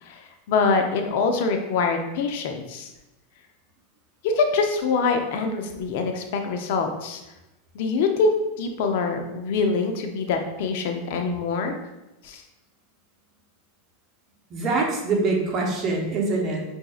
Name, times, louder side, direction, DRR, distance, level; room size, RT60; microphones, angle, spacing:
voice 1, 0.0-2.9 4.2-7.2 7.7-11.7 12.2-12.4, left 4 dB, 65° left, 5 dB, 0.5 m, -24 dB
voice 2, 14.5-16.6, right 3 dB, 35° right, 0 dB, 1.0 m, -24 dB
5.7 x 2.6 x 2.4 m, 0.97 s
hypercardioid pair, 115°, 0 cm